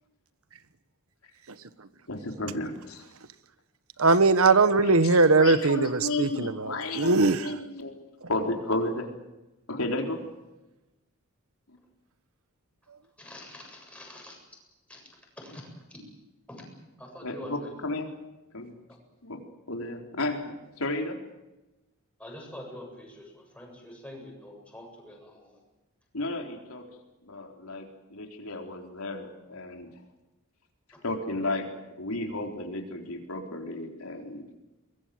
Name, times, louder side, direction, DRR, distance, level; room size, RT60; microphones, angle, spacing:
voice 1, 2.1-3.0 5.0-7.9 8.3-9.1 9.7-10.2 11.7-11.8 17.2-18.1 18.5-18.7 19.2-21.2 26.1-26.8 27.2-29.9 31.0-31.7 32.0-34.4, left 2 dB, 85° left, 3 dB, 4.0 m, -33 dB
voice 2, 4.0-7.6 8.2-8.3, right 3 dB, 80° right, 13 dB, 1.3 m, -21 dB
voice 3, 13.2-14.4 14.9-15.1 15.4-16.0 16.5-17.7 22.2-25.6, left 1 dB, 5° left, 0 dB, 7.7 m, -45 dB
23.5 x 21.0 x 7.8 m, 1.0 s
head